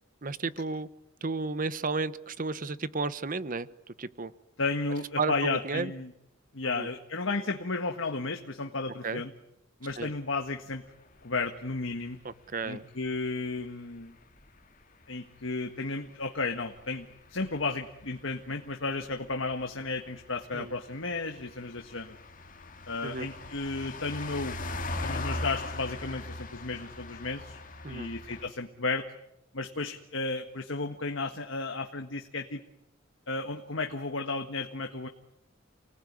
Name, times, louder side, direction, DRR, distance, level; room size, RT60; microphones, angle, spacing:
voice 1, 0.2-0.9 1.2-3.7 4.0-4.3 5.2-5.9 6.6-6.9 9.0-9.2 10.0-10.1 12.2-12.9 20.5-20.7 23.0-23.3 27.8-28.1, right 4 dB, 40° right, 15 dB, 1.0 m, -33 dB
voice 2, 4.6-6.1 6.5-9.3 9.8-10.8 11.2-12.2 12.6-14.2 15.1-22.2 22.9-24.6 25.0-27.6 27.9-29.0 29.5-32.6 33.3-35.1, left 3 dB, 65° left, 5 dB, 1.7 m, -33 dB
sound 1, 10.0-28.5, left 2 dB, 40° left, 2.4 m, -41 dB
29.5 x 19.0 x 9.7 m, 0.83 s
head